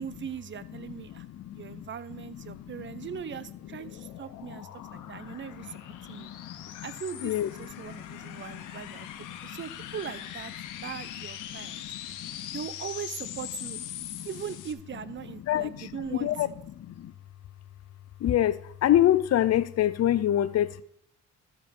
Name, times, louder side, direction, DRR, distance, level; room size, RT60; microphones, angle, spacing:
voice 1, 0.0-5.8 6.1-6.3 6.8-10.5 10.8-11.9 12.5-13.8 14.2-16.3, right 8 dB, 40° right, 0.7 m, -40 dB
voice 2, 0.8-1.9 2.2-3.1 3.7-6.9 7.2-9.6 10.6-10.8 11.5-12.6 13.9-14.3 15.4-17.1 18.2-20.8, left 12 dB, 55° left, 0.6 m, -29 dB
sound 1, 3.2-14.7, left 10 dB, 90° left, 1.0 m, -42 dB
13.0 x 4.9 x 5.2 m
cardioid pair, 90°, 30 cm